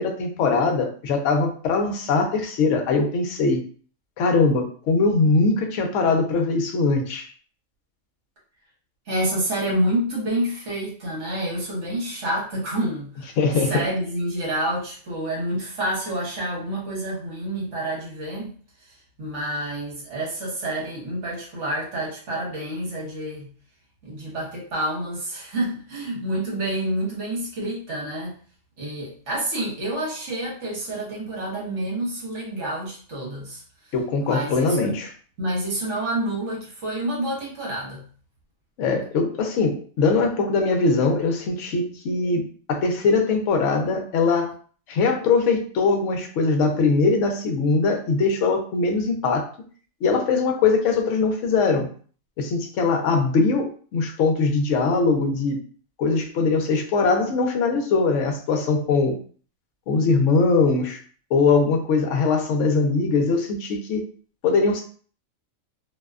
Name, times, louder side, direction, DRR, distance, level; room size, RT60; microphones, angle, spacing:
voice 1, 0.0-3.6 4.2-7.3 13.4-13.8 33.9-35.1 38.8-44.5 44.9-49.5 50.0-51.9 52.4-55.6 56.0-59.2 59.9-61.0 61.3-64.0 64.4-64.8, left 4 dB, 70° left, 3 dB, 0.9 m, -21 dB
voice 2, 9.1-13.4 13.7-18.5 18.8-23.5 24.0-28.4 28.8-33.6 34.2-35.0 35.4-38.0, right 1 dB, 60° right, -4 dB, 1.2 m, -28 dB
2.6 x 2.1 x 2.3 m, 0.43 s
omnidirectional pair, 1.5 m